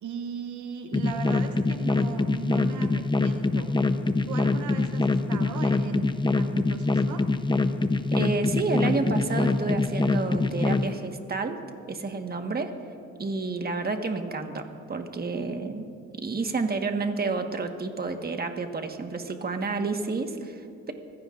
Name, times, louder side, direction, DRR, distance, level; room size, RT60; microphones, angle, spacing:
voice 1, 0.0-3.7 4.3-6.1 6.4-7.3, right 6 dB, 70° right, 6 dB, 0.9 m, -37 dB
sound 1, 0.9-10.9, left 3 dB, 15° left, 0.8 m, -24 dB
voice 2, 8.1-11.6 11.9-12.7 13.2-15.9 16.2-20.9, right 3 dB, 30° right, 5 dB, 1.5 m, -30 dB
25.0 x 16.0 x 2.5 m, 2.4 s
cardioid pair, 90°, 30 cm